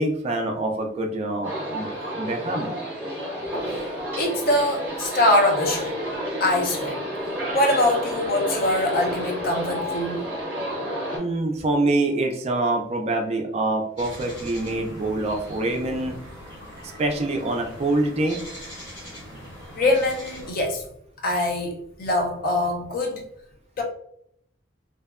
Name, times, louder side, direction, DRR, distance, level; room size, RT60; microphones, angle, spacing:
voice 1, 0.0-1.9 2.1-2.8 11.2-16.2 17.0-18.4, right 2 dB, 30° right, 3 dB, 0.3 m, -25 dB
sound 1, 1.4-11.2, equal, 10° right, 0.9 m, -30 dB
voice 2, 4.2-5.9 6.4-7.0 7.5-10.2 19.8-20.9 21.2-23.2 23.8-23.9, left 1 dB, 45° left, 1 dB, 0.5 m, -23 dB
sound 2, 14.0-20.5, equal, 25° left, 1.3 m, -41 dB
2.7 x 2.2 x 2.3 m, 0.71 s
head